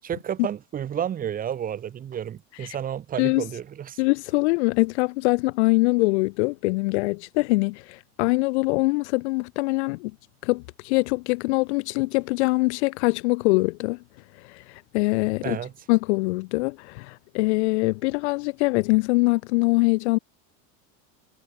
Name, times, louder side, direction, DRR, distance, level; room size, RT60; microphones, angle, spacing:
voice 1, 0.0-4.0 15.4-15.7, right 9 dB, 20° right, 2.8 m, -31 dB
voice 2, 4.0-10.1 10.4-14.0 14.4-15.6 15.9-20.2, left 25 dB, 50° left, 0.7 m, -23 dB
supercardioid pair, 170°, 42 cm